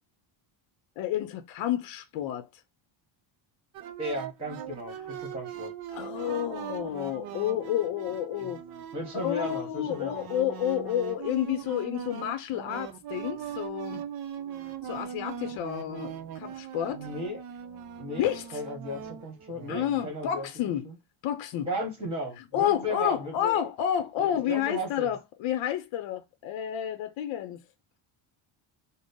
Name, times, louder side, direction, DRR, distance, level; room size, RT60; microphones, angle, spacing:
voice 1, 1.0-2.5 5.9-8.6 9.2-14.0 14.8-17.1 18.2-18.6 19.7-20.9 21.2-21.7 22.5-27.6, left 11 dB, 65° left, 0.7 m, -30 dB
sound 1, 3.7-20.1, right 9 dB, 50° right, 0.5 m, -40 dB
voice 2, 4.0-5.7 8.4-8.5 8.9-10.2 16.9-17.4 18.0-18.3 18.5-20.5 20.8-20.9 21.6-23.7 24.2-25.1, equal, 10° right, 1.4 m, -35 dB
3.8 x 2.1 x 3.6 m
cardioid pair, 165°, 50 cm